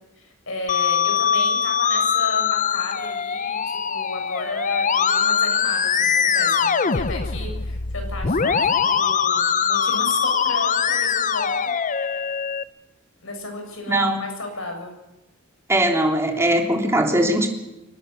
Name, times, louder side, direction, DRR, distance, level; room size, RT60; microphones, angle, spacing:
voice 1, 0.2-3.6 3.9-11.7 13.2-15.0, left 2 dB, 70° left, 4 dB, 7.2 m, -34 dB
Musical instrument, 0.7-12.6, left 6 dB, 40° left, 0.7 m, -22 dB
voice 2, 13.9-14.2 15.7-17.5, right 1 dB, 15° right, 1 dB, 3.1 m, -20 dB
24.0 x 19.5 x 6.7 m, 1.0 s
head